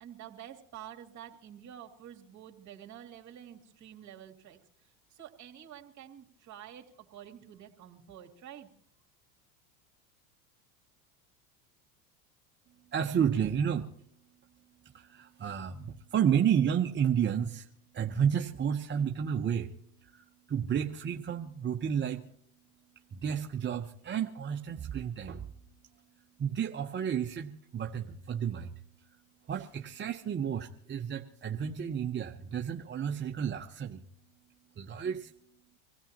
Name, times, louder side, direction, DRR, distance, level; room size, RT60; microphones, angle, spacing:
voice 1, 0.0-4.6 5.1-8.7, right 10 dB, 40° right, 2 dB, 2.8 m, -49 dB
voice 2, 12.9-13.9 14.9-17.7 17.9-19.7 20.0-20.2 20.5-22.2 23.1-25.5 26.4-28.8 29.5-34.0 34.8-35.3, right 8 dB, 25° right, 4 dB, 0.9 m, -31 dB
25.5 x 16.5 x 3.0 m, 0.64 s
hypercardioid pair, 95°, 44 cm